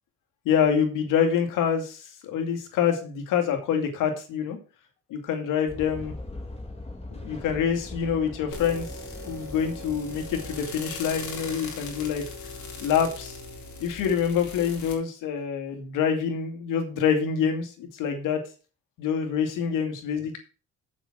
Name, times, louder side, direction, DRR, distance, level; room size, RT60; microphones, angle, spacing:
voice 1, 0.4-4.6 5.1-6.1 7.2-8.9 9.3-12.2 12.8-13.4 13.8-18.4 19.0-20.4, left 7 dB, 85° left, 4 dB, 2.5 m, -26 dB
sound 1, 5.7-10.7, left 2 dB, 20° left, 3.2 m, -40 dB
sound 2, 8.5-14.9, left 3 dB, 65° left, 3.8 m, -39 dB
7.8 x 7.4 x 6.2 m, 0.35 s
cardioid pair, 80°, 31 cm